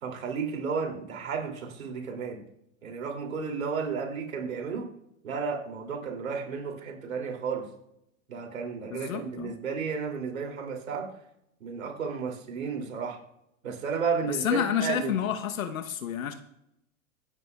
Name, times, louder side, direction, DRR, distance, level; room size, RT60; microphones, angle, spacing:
voice 1, 0.0-2.4 2.8-4.9 5.2-7.7 8.3-11.1 11.6-13.2 13.6-15.1, right 5 dB, 90° right, 2 dB, 2.9 m, -33 dB
voice 2, 8.9-9.5 14.3-16.3, left 9 dB, 90° left, 7 dB, 1.1 m, -29 dB
25.0 x 9.9 x 2.4 m, 0.81 s
hypercardioid pair, 115°, 40 cm